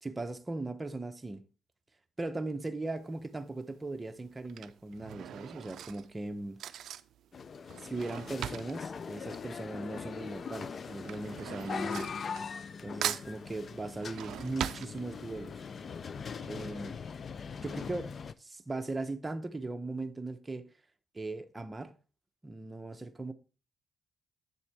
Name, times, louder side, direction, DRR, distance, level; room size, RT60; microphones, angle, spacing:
voice 1, 0.0-1.4 2.2-6.6 7.8-12.1 12.8-15.6 16.4-16.9 17.6-18.1 18.4-20.7 21.1-21.9 22.4-23.3, right 2 dB, 20° right, 0.8 m, -38 dB
Drawer open or close / Cutlery silverware, 3.0-3.4 4.2-10.1 10.4-12.8 13.0-15.5 16.0-16.1 16.3-16.4, right 10 dB, 70° right, 0.4 m, -41 dB
sound 1, 7.3-18.3, left 6 dB, 45° left, 0.4 m, -41 dB
7.8 x 7.0 x 3.4 m
cardioid pair, 90°, 0 cm